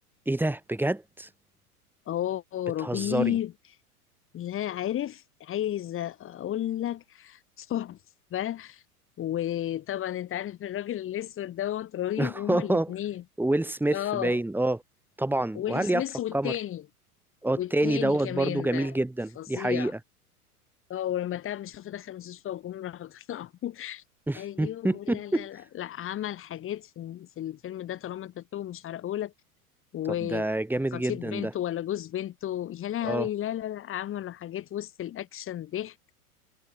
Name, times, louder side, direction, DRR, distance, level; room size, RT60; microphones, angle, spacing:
voice 1, 0.3-1.3 2.8-3.4 12.2-12.9 13.4-14.8 15.2-16.0 16.3-16.5 17.4-20.0 24.3-25.5 30.2-31.5 33.0-33.3, right 1 dB, 5° right, 6.0 m, -27 dB
voice 2, 2.1-3.5 4.3-8.0 8.3-8.8 9.2-13.2 13.9-14.4 15.5-16.8 17.6-18.9 19.4-19.9 20.9-24.0 24.3-29.3 29.9-30.5 30.9-36.0, left 12 dB, 25° left, 5.6 m, -33 dB
figure-of-eight pair, 95°, 45 cm